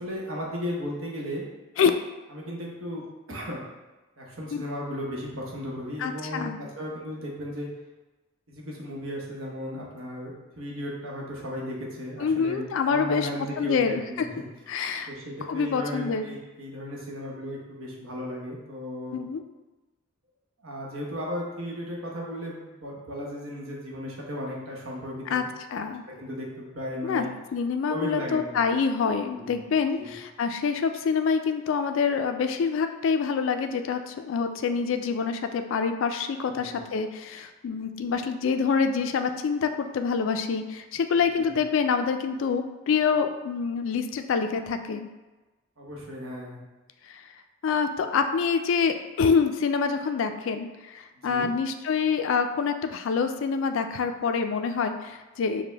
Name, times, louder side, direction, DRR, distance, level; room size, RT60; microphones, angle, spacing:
voice 1, 0.0-1.4 2.3-3.6 4.2-7.7 8.5-14.4 14.7-19.2 20.6-25.5 26.1-27.3 27.9-28.6 29.3-29.6 30.0-30.2 36.4-36.8 41.4-41.6 45.8-46.6 51.1-51.5, equal, 70° right, -3 dB, 0.9 m, -35 dB
voice 2, 6.0-6.6 12.2-13.3 13.6-14.3 14.7-15.1 15.5-16.3 19.1-19.4 25.3-25.4 25.7-26.0 27.0-27.3 27.5-45.1 47.1-47.2 47.6-55.6, left 5 dB, 60° left, 7 dB, 0.3 m, -26 dB
5.0 x 2.1 x 3.3 m, 1.2 s
head